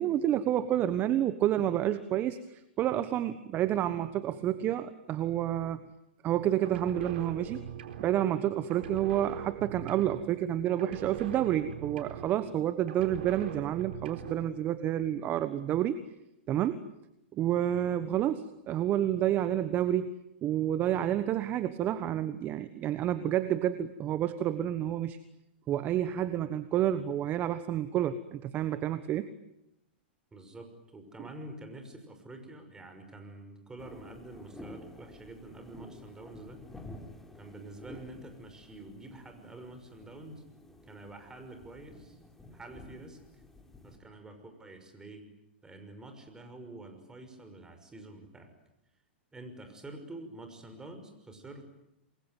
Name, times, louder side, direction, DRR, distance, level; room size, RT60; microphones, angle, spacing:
voice 1, 0.0-5.8 6.2-7.6 8.0-16.0 16.5-16.9 17.3-20.2 20.4-25.2 25.7-29.3, right 11 dB, 30° right, 13 dB, 1.3 m, -29 dB
sound 1, 6.6-8.4 8.7-10.5 10.8-12.6 12.9-14.6, right 9 dB, 70° right, 4.1 m, -42 dB
voice 2, 30.3-36.6 37.4-40.4 40.9-42.2 42.5-43.4 43.8-45.3 45.6-48.5 49.3-51.7, right 2 dB, 10° right, 6 dB, 6.0 m, -47 dB
sound 2, 33.8-44.0, left 1 dB, 5° left, 3.9 m, -51 dB
28.5 x 22.0 x 9.4 m, 0.85 s
hypercardioid pair, 125°, 6 cm